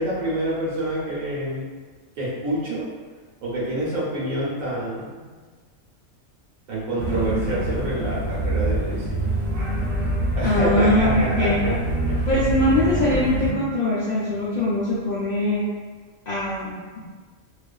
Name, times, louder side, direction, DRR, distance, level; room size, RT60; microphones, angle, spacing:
voice 1, 0.0-1.7 2.2-2.9 3.4-5.2 6.7-9.3 10.3-11.7, right 1 dB, 85° right, -7 dB, 1.1 m, -27 dB
sound 1, 7.0-13.5, right 1 dB, 60° right, 0.8 m, -25 dB
voice 2, 10.4-11.6 12.3-15.7 16.3-17.0, left 1 dB, 65° left, -10 dB, 0.4 m, -22 dB
2.4 x 2.4 x 2.3 m, 1.4 s
omnidirectional pair, 1.4 m